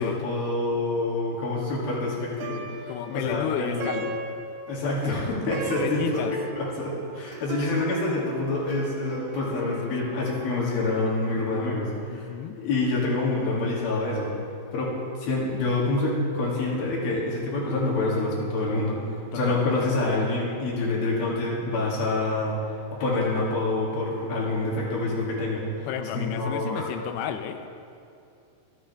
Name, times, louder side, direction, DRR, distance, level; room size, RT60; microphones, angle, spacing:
voice 1, 0.0-3.9 4.7-6.2 6.6-12.3 12.5-14.3 14.7-14.9 15.2-25.9 26.1-26.9, left 2 dB, 65° left, -5 dB, 4.3 m, -27 dB
Plucked string instrument, 2.2-11.6, right 2 dB, 80° right, 2.9 m, -37 dB
voice 2, 2.9-4.2 5.7-6.3 9.5-9.9 12.1-12.6 19.3-19.9 25.8-27.7, left 9 dB, 85° left, 7 dB, 2.8 m, -33 dB
27.0 x 9.2 x 3.5 m, 2.6 s
omnidirectional pair, 4.8 m